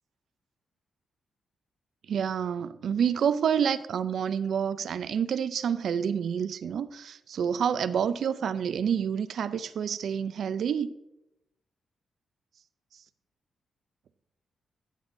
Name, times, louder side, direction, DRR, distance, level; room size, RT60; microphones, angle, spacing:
voice 1, 2.1-10.9 12.9-13.0, right 7 dB, 65° right, 0.3 m, -28 dB
11.5 x 8.9 x 2.6 m
wide cardioid pair, 150°, 0 cm